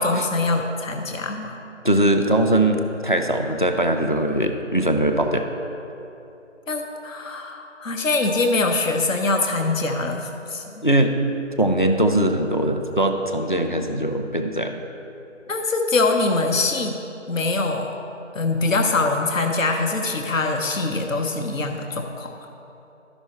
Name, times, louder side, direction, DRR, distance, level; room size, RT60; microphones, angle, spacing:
voice 1, 0.0-1.6 6.7-10.8 15.5-16.9 17.3-18.0 18.3-22.3, left 3 dB, 80° left, 3 dB, 0.9 m, -23 dB
voice 2, 1.8-5.4 10.8-11.2 11.6-14.8, right 1 dB, 40° left, 5 dB, 0.5 m, -21 dB
12.5 x 5.5 x 4.4 m, 3.0 s
figure-of-eight pair, 175°, 39 cm